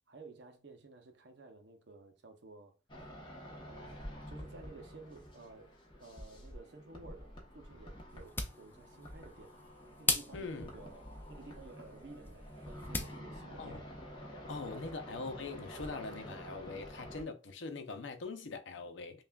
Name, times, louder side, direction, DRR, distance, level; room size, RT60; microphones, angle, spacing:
voice 1, 0.1-2.8 3.6-5.7 6.0-9.6 10.0-13.8 14.7-14.8, right 3 dB, 65° right, 0.6 m, -54 dB
sound 1, 2.9-17.2, equal, 25° left, 0.9 m, -49 dB
sound 2, 8.1-13.2, left 3 dB, 10° left, 0.3 m, -40 dB
voice 2, 10.3-10.7 13.6-13.8 14.5-19.2, left 3 dB, 90° left, 0.6 m, -42 dB
5.5 x 2.4 x 2.3 m
head